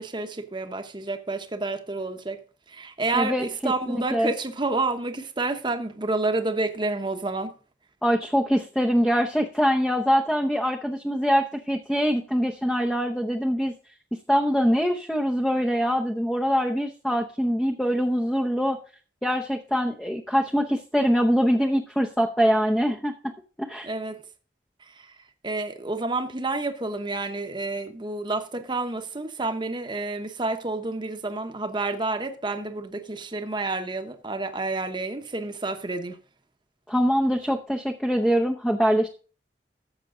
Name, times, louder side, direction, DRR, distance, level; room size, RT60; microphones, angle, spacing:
voice 1, 0.0-2.4 2.7-7.5 23.8-24.2 24.8-25.1 25.4-36.2, right 2 dB, 25° right, 1.0 m, -29 dB
voice 2, 3.1-4.3 8.0-13.7 14.1-18.8 19.2-23.1 23.6-23.9 36.9-39.1, equal, 5° left, 0.7 m, -23 dB
14.0 x 6.8 x 3.8 m
head